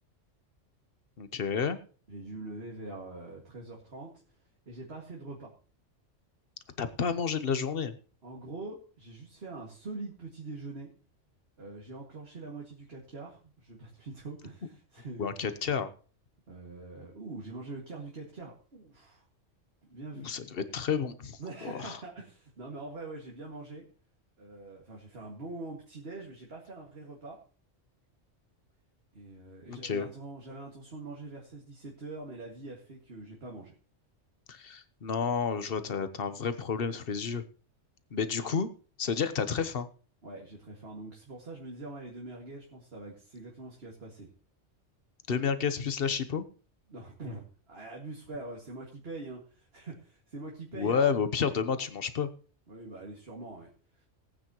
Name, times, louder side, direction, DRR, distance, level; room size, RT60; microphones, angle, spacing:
voice 1, 1.2-1.8 6.8-7.9 15.2-15.9 20.2-21.4 21.6-22.0 29.7-30.1 34.5-37.4 38.1-38.7 39.0-39.9 45.3-46.4 50.7-52.3, left 6 dB, 50° left, 11 dB, 1.1 m, -30 dB
voice 2, 2.1-4.1 4.7-5.5 8.2-10.9 11.6-15.3 16.5-19.3 19.8-20.3 21.4-23.8 24.4-27.4 29.1-33.7 40.2-44.3 46.9-51.2 52.7-53.7 53.9-54.0, right 2 dB, 55° right, -2 dB, 2.3 m, -43 dB
19.0 x 9.0 x 3.0 m, 0.37 s
omnidirectional pair, 1.3 m